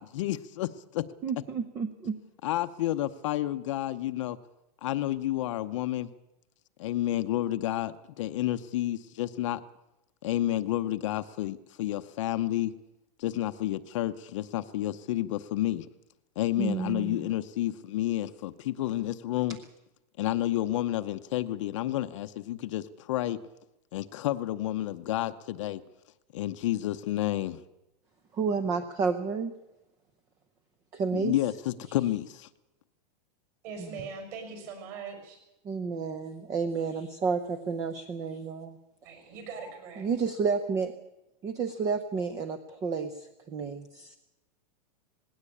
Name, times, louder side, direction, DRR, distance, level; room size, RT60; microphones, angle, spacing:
voice 1, 0.0-1.0 2.4-4.4 4.8-6.1 6.8-9.6 10.2-12.7 13.2-15.9 16.4-19.6 20.2-23.4 23.9-25.8 26.3-27.6 31.1-32.5, left 14 dB, 45° left, 10 dB, 0.8 m, -30 dB
voice 2, 1.2-2.2 16.6-17.3 28.3-29.5 30.9-31.3 33.8-34.1 35.6-38.8 40.0-40.9 41.4-44.2, right 5 dB, 15° right, 10 dB, 0.7 m, -31 dB
voice 3, 33.6-35.4 39.0-40.1, right 5 dB, 35° right, 6 dB, 6.0 m, -41 dB
19.5 x 17.0 x 8.5 m, 0.93 s
supercardioid pair, 180°, 21 cm